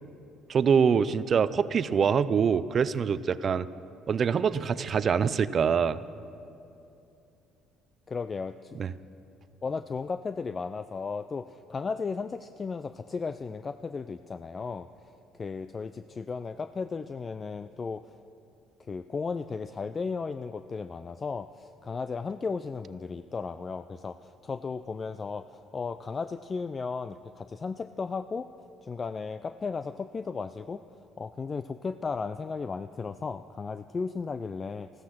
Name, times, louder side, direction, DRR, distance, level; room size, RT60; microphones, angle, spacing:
voice 1, 0.5-3.7 4.1-6.0 8.8-8.9, right 6 dB, 45° right, 16 dB, 0.5 m, -24 dB
voice 2, 8.1-8.8 9.6-14.9 15.3-18.2 18.8-28.5 28.8-30.8 31.2-34.9, left 4 dB, 30° left, 12 dB, 0.4 m, -35 dB
14.0 x 14.0 x 5.9 m, 2.8 s
supercardioid pair, 90°, 0 cm